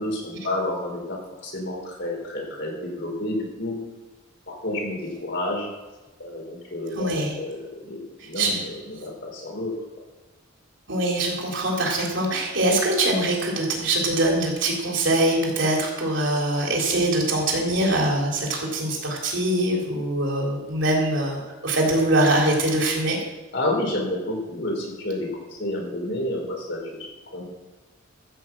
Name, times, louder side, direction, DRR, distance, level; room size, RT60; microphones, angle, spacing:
voice 1, 0.0-3.8 4.5-5.7 6.2-9.7 23.5-27.4, left 1 dB, 60° left, 0 dB, 4.5 m, -30 dB
voice 2, 6.9-7.3 8.2-8.6 10.9-23.2, right 1 dB, 60° right, -1 dB, 3.7 m, -23 dB
14.0 x 6.4 x 7.6 m, 1.2 s
head